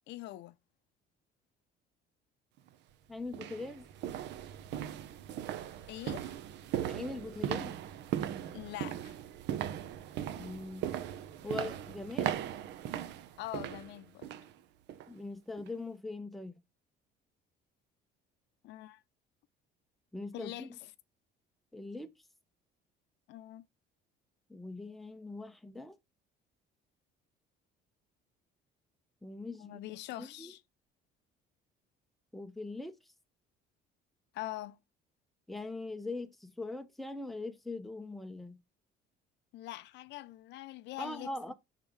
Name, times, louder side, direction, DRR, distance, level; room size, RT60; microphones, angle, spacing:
voice 1, 0.1-0.6 5.9-6.4 8.5-9.2 13.4-14.3 18.6-19.0 20.3-20.7 23.3-23.6 29.6-30.6 34.3-34.8 39.5-41.5, left 15 dB, 70° left, 0.5 m, -43 dB
sound 1, 2.6-2.7 3.3-14.5 14.9-15.1 15.6-15.7, right 10 dB, 70° right, 0.7 m, -38 dB
voice 2, 3.1-3.9 6.9-7.8 10.3-10.9 11.4-12.3 15.1-16.6 20.1-20.8 21.7-22.1 24.5-26.0 29.2-29.8 30.2-30.5 32.3-32.9 35.5-38.6 41.0-41.5, left 2 dB, ahead, 0.6 m, -41 dB
5.4 x 3.7 x 4.6 m
cardioid pair, 135°, 19 cm